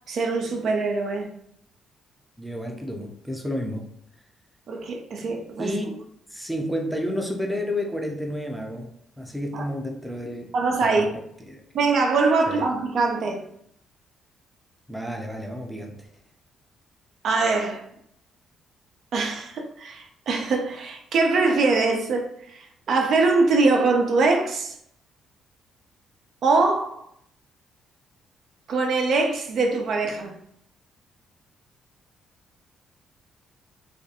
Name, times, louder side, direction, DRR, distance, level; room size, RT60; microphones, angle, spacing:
voice 1, 0.1-1.3 4.7-5.8 9.5-9.6 10.5-11.1 11.7-13.4 17.2-17.8 19.1-24.7 26.4-27.0 28.7-30.4, right 3 dB, 65° right, 0.4 m, -23 dB
voice 2, 2.4-3.9 5.6-6.0 6.3-8.9 9.2-10.5 10.8-11.1 11.5-11.6 12.5-12.7 14.9-16.1, equal, ahead, 0.5 m, -31 dB
2.4 x 2.2 x 2.7 m
cardioid pair, 90°, 0 cm